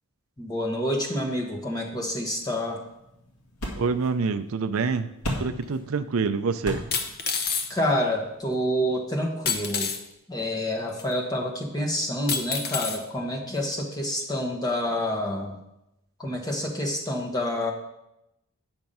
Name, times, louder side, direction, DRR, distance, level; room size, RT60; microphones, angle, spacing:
voice 1, 0.4-2.8 7.7-9.9 10.3-15.6 16.2-17.7, left 1 dB, 15° left, 1 dB, 1.3 m, -28 dB
sound 1, 1.9-9.0, equal, 80° left, 2.0 m, -39 dB
voice 2, 3.8-5.1 5.4-6.8, right 4 dB, 70° right, 10 dB, 0.5 m, -26 dB
sound 2, 5.6-5.7 6.9-7.7 9.5-10.0 11.0-11.1 12.3-13.0 13.7-13.8, left 6 dB, 45° left, 0.9 m, -28 dB
8.8 x 5.9 x 5.4 m, 0.86 s
head